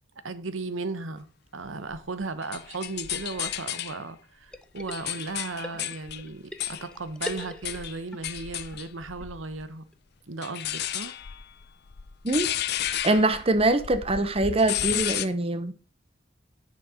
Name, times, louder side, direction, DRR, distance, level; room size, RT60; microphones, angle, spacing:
voice 1, 0.2-1.3 1.5-9.8 10.3-11.2, right 3 dB, 85° right, 1.0 m, -36 dB
sound 1, 1.9-4.0 4.5-9.6 10.4-15.3, left 11 dB, 55° left, 0.6 m, -33 dB
sound 2, 4.5-5.4 5.6-8.2 8.5-8.6 8.7-8.8 9.2-9.3 9.6-9.7 9.9-10.0 10.4-10.5, left 1 dB, 5° left, 0.6 m, -41 dB
voice 2, 12.9-15.7, right 2 dB, 30° right, 0.8 m, -23 dB
9.9 x 6.4 x 4.9 m
head